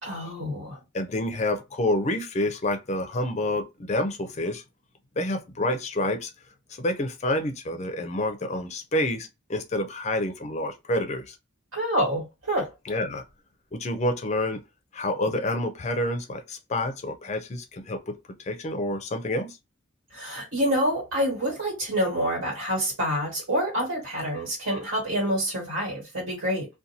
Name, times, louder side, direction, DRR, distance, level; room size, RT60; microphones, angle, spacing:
voice 1, 0.0-0.8 11.7-12.7 20.1-26.7, equal, 75° right, 1.5 m, -27 dB
voice 2, 0.9-4.6 5.2-6.3 6.8-11.4 12.9-13.2 13.7-14.6 14.9-19.6, left 1 dB, 35° left, 0.4 m, -28 dB
2.5 x 2.2 x 2.8 m
head